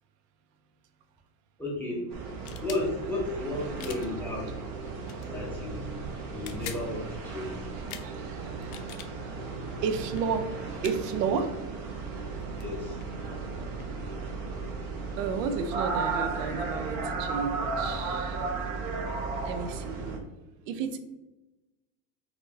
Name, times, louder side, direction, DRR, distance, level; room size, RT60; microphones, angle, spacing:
voice 1, 1.6-2.1 2.6-4.5 5.3-6.0 6.3-7.7 12.6-13.0, left 2 dB, 5° left, -5 dB, 0.4 m, -33 dB
sound 1, 2.1-20.2, right 4 dB, 50° right, 0.8 m, -35 dB
sound 2, 2.3-2.8 3.8-4.1 5.0-5.3 6.3-6.9 7.9-8.1 8.6-9.1 10.1-10.2 10.8-11.0 12.3-12.4 12.6-13.9, left 10 dB, 70° left, 0.5 m, -43 dB
voice 2, 7.7-10.5 10.8-11.5 15.2-18.4 19.2-20.3 20.7-21.0, right 6 dB, 90° right, 9 dB, 0.6 m, -33 dB
4.1 x 2.2 x 2.6 m, 1.1 s
supercardioid pair, 135°, 47 cm